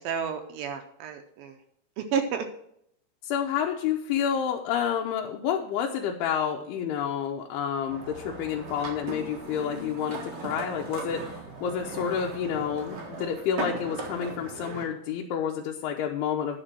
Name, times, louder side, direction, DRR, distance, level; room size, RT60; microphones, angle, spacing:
voice 1, 0.0-1.6 2.0-2.5, right 7 dB, 80° right, 7 dB, 2.2 m, -31 dB
voice 2, 3.2-16.6, left 8 dB, 85° left, 1 dB, 2.7 m, -29 dB
sound 1, 7.9-14.8, right 3 dB, 50° right, 2.1 m, -38 dB
10.0 x 4.3 x 7.4 m, 0.73 s
omnidirectional pair, 4.6 m